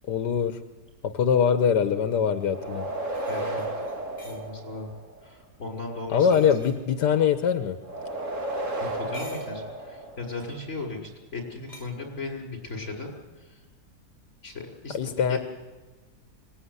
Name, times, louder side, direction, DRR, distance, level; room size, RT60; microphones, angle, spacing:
voice 1, 0.1-0.6 1.0-2.9 6.1-7.8 14.9-15.4, left 7 dB, 85° left, 8 dB, 1.7 m, -23 dB
sound 1, 2.4-2.5 3.1-4.5 6.2-6.8 8.9-9.6 10.3-10.6 11.7-11.9, left 1 dB, 20° left, 2.8 m, -49 dB
sound 2, 2.5-5.2 7.8-10.5, right 1 dB, 45° right, 3.0 m, -33 dB
voice 2, 3.3-3.7 4.2-4.9 5.2-6.6 8.8-13.1 13.4-13.7 14.4-15.4, left 3 dB, 40° left, 1 dB, 6.0 m, -37 dB
25.5 x 19.5 x 9.7 m, 1.3 s
omnidirectional pair, 1.8 m